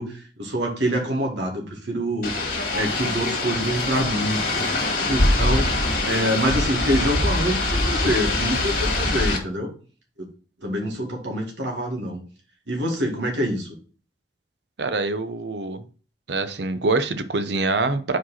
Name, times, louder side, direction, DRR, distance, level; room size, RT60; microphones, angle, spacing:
voice 1, 0.0-2.4 2.7-4.7 5.1-5.7 6.0-9.7 10.2-10.3 10.6-12.2 12.7-13.7, equal, 85° right, 1 dB, 2.0 m, -26 dB
sound 1, 2.2-9.4, left 2 dB, 50° left, 1.9 m, -23 dB
voice 2, 14.8-15.8 16.3-18.2, right 3 dB, 70° right, 11 dB, 0.7 m, -25 dB
4.7 x 4.6 x 5.7 m, 0.39 s
head